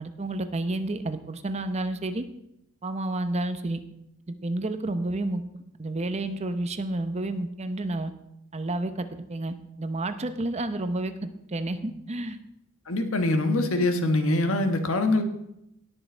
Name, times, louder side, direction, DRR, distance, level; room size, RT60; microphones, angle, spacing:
voice 1, 0.0-2.2 2.8-3.8 4.3-8.1 8.5-12.4, right 2 dB, 30° right, 9 dB, 0.8 m, -30 dB
voice 2, 12.9-15.2, left 2 dB, 65° left, 6 dB, 1.3 m, -24 dB
17.5 x 6.5 x 4.5 m, 0.81 s
head